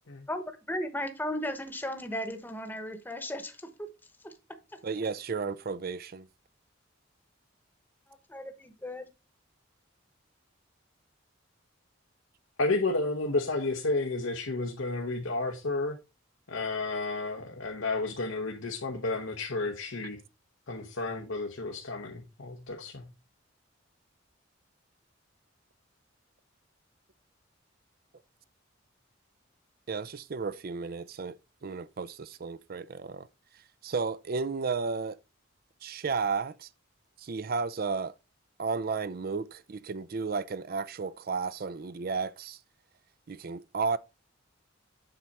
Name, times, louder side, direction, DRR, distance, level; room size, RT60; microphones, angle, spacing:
voice 1, 0.3-3.5 3.8-3.9 4.2-4.3 8.3-9.1, left 1 dB, 10° left, 1.0 m, -35 dB
voice 2, 4.8-6.3 29.9-33.3 33.5-35.2 35.8-36.7 37.2-38.1 38.6-42.6 43.3-44.0, right 4 dB, 50° right, 0.5 m, -33 dB
voice 3, 12.6-16.0 16.5-20.2 20.7-23.1, left 3 dB, 85° left, 1.1 m, -31 dB
7.9 x 6.0 x 4.2 m
head